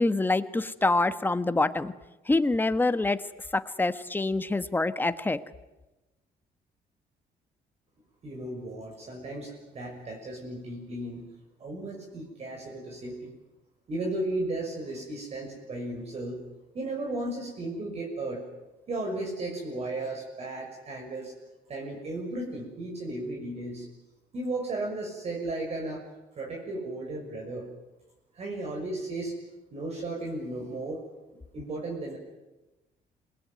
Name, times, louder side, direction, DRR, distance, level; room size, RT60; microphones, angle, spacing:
voice 1, 0.0-1.9 2.3-3.2 3.5-5.4, left 2 dB, 10° left, 11 dB, 1.2 m, -26 dB
voice 2, 8.2-11.2 11.6-13.3 13.9-16.4 16.7-18.4 18.9-21.3 21.7-23.8 24.3-26.0 26.4-27.7 28.3-29.3 29.7-31.0 31.5-32.2, right 2 dB, 45° right, 0 dB, 6.3 m, -35 dB
27.5 x 20.5 x 9.5 m, 1.0 s
cardioid pair, 130°, 16 cm